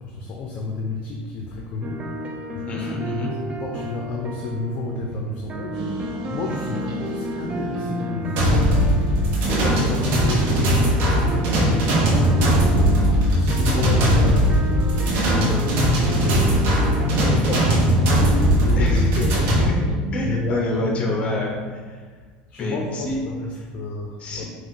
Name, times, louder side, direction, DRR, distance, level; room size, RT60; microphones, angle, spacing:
voice 1, 0.0-2.2 2.5-9.0 9.4-19.4 20.2-21.4 22.5-24.4, left 3 dB, 45° left, 0 dB, 0.5 m, -30 dB
sound 1, 1.8-17.1, right 1 dB, 25° right, 0.4 m, -33 dB
voice 2, 2.7-3.3 18.8-19.7 20.1-22.0 22.6-23.2 23.5-23.6 24.2-24.4, left 2 dB, 30° left, -1 dB, 0.9 m, -28 dB
sound 2, 5.7-20.3, left 2 dB, 85° right, 1.3 m, -31 dB
sound 3, 8.4-19.7, equal, 65° right, 1.0 m, -19 dB
4.4 x 2.5 x 3.7 m, 1.5 s
supercardioid pair, 115°, 4 cm